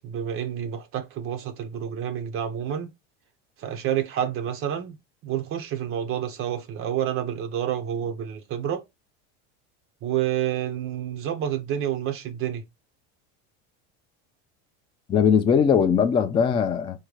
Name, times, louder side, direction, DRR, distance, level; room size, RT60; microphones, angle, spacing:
voice 1, 0.0-2.9 3.6-5.0 5.2-8.8 10.0-12.6, right 10 dB, 35° right, 0.5 m, -29 dB
voice 2, 15.1-17.0, left 7 dB, 15° left, 0.3 m, -20 dB
3.6 x 2.2 x 3.1 m
supercardioid pair, 130°, 37 cm